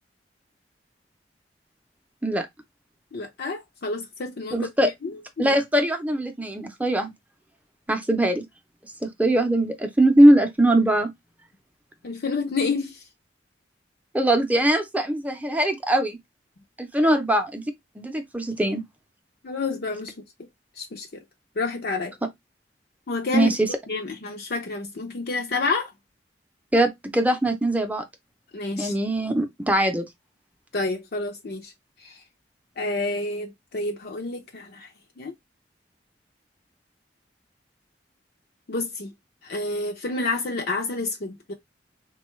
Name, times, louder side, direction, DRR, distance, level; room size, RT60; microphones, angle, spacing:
voice 1, 3.1-4.7 5.0-5.6 12.0-13.0 19.4-20.1 20.8-21.2 21.6-22.1 23.1-23.5 23.9-25.9 28.5-28.9 30.7-31.7 32.0-32.2 32.8-34.9 35.2-35.3 38.7-39.1 39.4-41.5, left 3 dB, 60° left, 0.6 m, -29 dB
voice 2, 4.5-4.9 5.4-7.1 7.9-8.4 9.0-11.1 14.1-16.2 16.8-17.7 18.0-18.8 23.3-23.7 26.7-28.0 28.8-30.0, right 1 dB, 10° right, 0.6 m, -21 dB
3.8 x 2.3 x 3.1 m
head